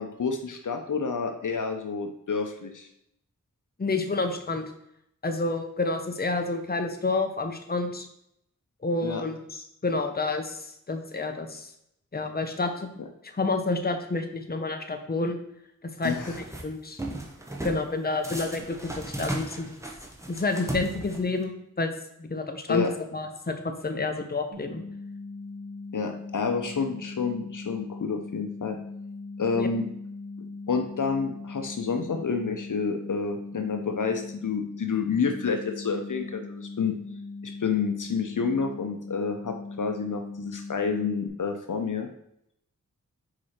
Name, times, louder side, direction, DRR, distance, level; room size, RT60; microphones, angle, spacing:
voice 1, 0.0-2.9 9.0-9.2 16.0-16.4 22.7-22.9 25.9-28.8 29.4-29.9 30.7-37.0 37.4-42.1, left 5 dB, 70° left, 5 dB, 0.7 m, -29 dB
voice 2, 3.8-4.7 5.2-8.1 8.8-10.6 10.9-11.7 12.1-12.9 13.3-15.4 16.0-17.0 17.6-19.8 20.3-21.9 22.2-22.8 23.1-24.8 29.5-29.7, left 3 dB, 30° left, 6 dB, 0.8 m, -29 dB
sound 1, 16.0-16.6 17.0-17.8 18.2-21.4, right 1 dB, 10° right, 1.2 m, -36 dB
sound 2, 24.5-41.3, left 3 dB, 70° right, 1.6 m, -40 dB
4.8 x 4.8 x 4.3 m, 0.75 s
wide cardioid pair, 45°, 32 cm